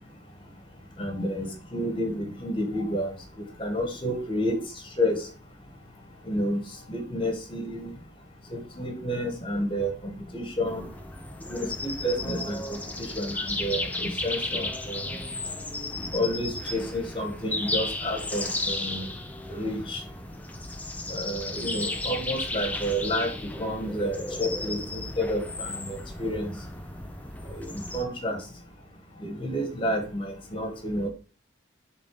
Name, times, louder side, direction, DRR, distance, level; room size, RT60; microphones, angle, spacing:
voice 1, 1.0-3.1 3.6-4.6 5.0-5.3 6.3-6.6 6.9-7.9 8.5-10.9 11.5-15.0 16.1-19.1 19.5-20.0 21.1-23.3 23.6-26.6 27.5-28.4 29.2-31.1, equal, 25° left, 4 dB, 1.8 m, -30 dB
sound 1, 10.6-28.0, left 2 dB, 10° left, 0.7 m, -34 dB
8.7 x 4.0 x 5.1 m, 0.37 s
head